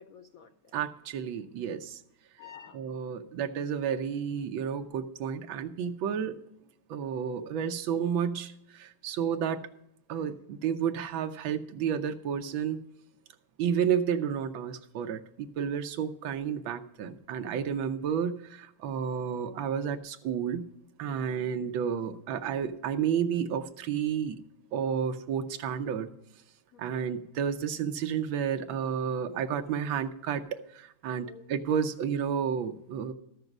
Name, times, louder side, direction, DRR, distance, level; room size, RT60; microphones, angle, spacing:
voice 1, 0.0-0.8 2.4-2.8 10.1-10.2 21.1-21.4 26.7-27.0 31.2-31.4, left 7 dB, 90° left, 7 dB, 0.7 m, -51 dB
voice 2, 0.7-2.0 2.7-6.4 6.9-9.6 10.1-12.8 13.6-20.6 21.0-24.4 24.7-26.1 26.8-30.4 30.7-33.1, right 8 dB, 70° right, 7 dB, 1.5 m, -31 dB
13.0 x 6.6 x 6.0 m, 0.77 s
omnidirectional pair, 2.3 m